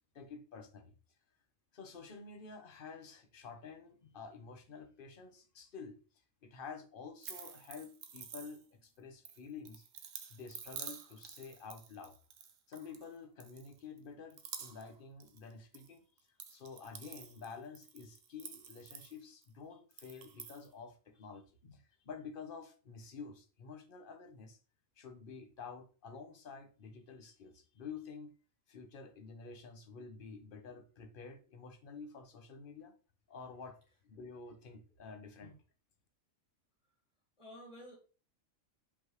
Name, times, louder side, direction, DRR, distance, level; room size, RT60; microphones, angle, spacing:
voice 1, 0.1-0.9 1.7-6.0 6.4-9.8 10.3-12.1 12.7-16.0 16.5-24.6 25.0-28.3 28.7-32.9 33.3-35.5, left 5 dB, 50° left, 0.8 m, -50 dB
sound 1, 7.2-8.8 9.2-13.1 13.4-14.0 14.3-15.9 16.2-19.5 19.9-20.7, right 7 dB, 60° right, 0.8 m, -49 dB
voice 2, 37.4-38.0, equal, 20° left, 1.7 m, -52 dB
5.3 x 3.3 x 3.0 m
omnidirectional pair, 1.4 m